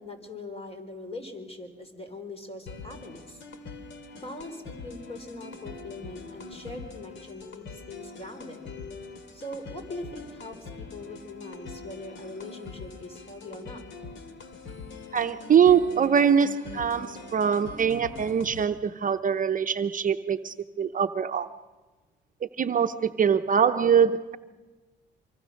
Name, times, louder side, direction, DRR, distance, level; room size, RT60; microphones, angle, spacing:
voice 1, 0.0-3.4 4.1-8.7 9.3-13.8, left 2 dB, 30° left, 7 dB, 4.1 m, -41 dB
sound 1, 2.7-18.7, left 4 dB, 70° left, 2.5 m, -43 dB
voice 2, 15.1-21.5 22.6-24.4, right 7 dB, 40° right, 8 dB, 0.7 m, -23 dB
25.0 x 25.0 x 6.4 m, 1.3 s
cardioid pair, 90°, 20 cm